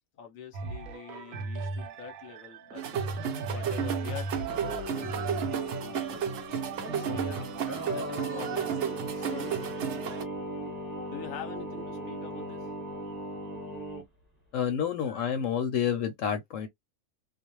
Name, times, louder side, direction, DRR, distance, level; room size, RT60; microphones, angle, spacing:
voice 1, 0.2-6.2 6.9-7.5 7.9-9.5 11.1-12.7, left 8 dB, 45° left, 0.7 m, -45 dB
sound 1, 0.5-10.3 11.0-11.1, right 3 dB, 90° right, 1.0 m, -39 dB
sound 2, 2.7-10.2, right 8 dB, 65° right, 0.8 m, -33 dB
Singing, 4.3-14.0, right 1 dB, 15° right, 1.1 m, -38 dB
voice 2, 14.5-16.7, left 8 dB, 70° left, 0.9 m, -29 dB
2.4 x 2.0 x 2.9 m
omnidirectional pair, 1.5 m